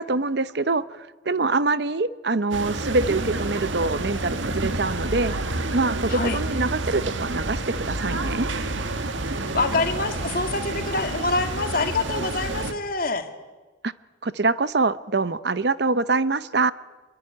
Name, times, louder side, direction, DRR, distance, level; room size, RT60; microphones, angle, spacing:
voice 1, 0.0-5.3 5.7-8.5 13.8-13.9 14.2-16.7, right 3 dB, 55° right, 16 dB, 0.8 m, -24 dB
sound 1, 2.5-12.7, right 2 dB, 75° right, 1.7 m, -29 dB
voice 2, 9.5-13.3, left 3 dB, 45° left, 7 dB, 2.1 m, -26 dB
26.0 x 21.5 x 9.8 m, 1.3 s
head